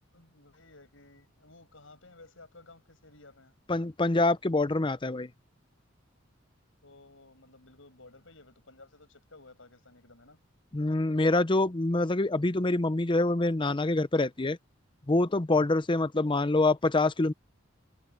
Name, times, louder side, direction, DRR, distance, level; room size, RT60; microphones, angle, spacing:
voice 1, 0.1-3.5 6.8-10.4 16.1-16.5, left 2 dB, 80° left, 7.4 m, -55 dB
voice 2, 3.7-5.3 10.7-14.6 15.1-17.3, left 2 dB, 25° left, 0.7 m, -25 dB
head